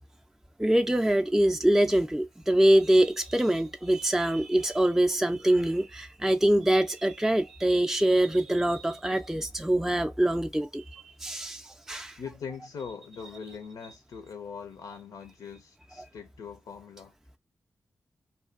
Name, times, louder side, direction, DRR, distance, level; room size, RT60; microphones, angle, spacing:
voice 1, 0.6-11.6 11.9-12.1, right 1 dB, 5° right, 0.4 m, -24 dB
voice 2, 12.2-17.1, left 6 dB, 75° left, 0.4 m, -41 dB
2.3 x 2.2 x 2.4 m
supercardioid pair, 40°, 6 cm